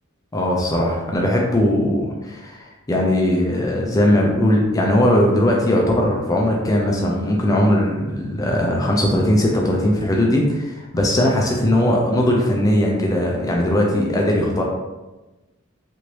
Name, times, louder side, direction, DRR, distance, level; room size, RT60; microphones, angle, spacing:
voice 1, 0.3-14.6, left 1 dB, 15° left, -1 dB, 0.3 m, -19 dB
2.9 x 2.6 x 3.1 m, 1.1 s
head